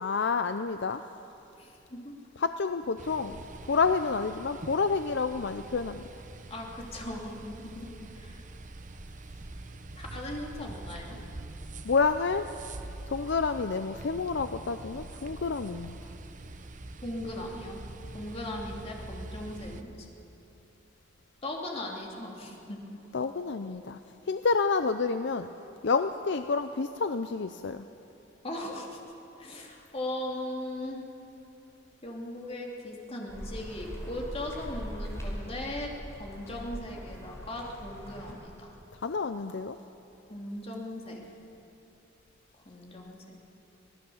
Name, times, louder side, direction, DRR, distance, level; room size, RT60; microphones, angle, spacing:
voice 1, 0.0-1.0 2.4-3.4 3.7-6.0 11.8-12.5 13.1-16.0 23.1-24.0 24.3-25.5 25.8-27.9 39.0-39.8, left 4 dB, 60° left, 9 dB, 0.6 m, -29 dB
voice 2, 1.6-2.2 6.5-7.9 8.1-8.4 9.9-11.2 17.0-17.8 18.1-20.1 21.4-22.8 28.4-29.0 29.4-31.0 32.0-38.7 40.3-41.2 42.6-43.4, left 1 dB, 30° left, -1 dB, 3.1 m, -38 dB
sound 1, 3.0-19.8, right 2 dB, 40° right, 0.9 m, -44 dB
sound 2, 33.3-38.3, equal, 15° left, 4.9 m, -41 dB
25.0 x 18.0 x 7.2 m, 2.9 s
head